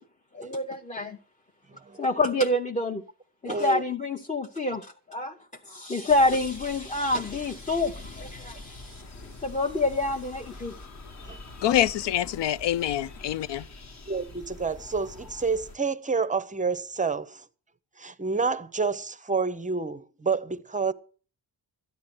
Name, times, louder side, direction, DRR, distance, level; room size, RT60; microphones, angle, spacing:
voice 1, 0.3-1.2 2.0-3.0 3.4-5.3 5.7-9.0 9.4-10.8, left 2 dB, 15° left, 0.7 m, -27 dB
voice 2, 3.5-3.8 14.1-14.2 14.6-15.1 15.4-17.2 18.2-18.9 19.3-19.9 20.3-20.4 20.7-20.9, right 4 dB, 20° right, 0.5 m, -27 dB
sound 1, 6.1-15.8, left 2 dB, 40° left, 1.1 m, -45 dB
voice 3, 11.6-13.7, left 12 dB, 90° left, 0.6 m, -25 dB
13.5 x 10.0 x 6.0 m
wide cardioid pair, 180°, 41 cm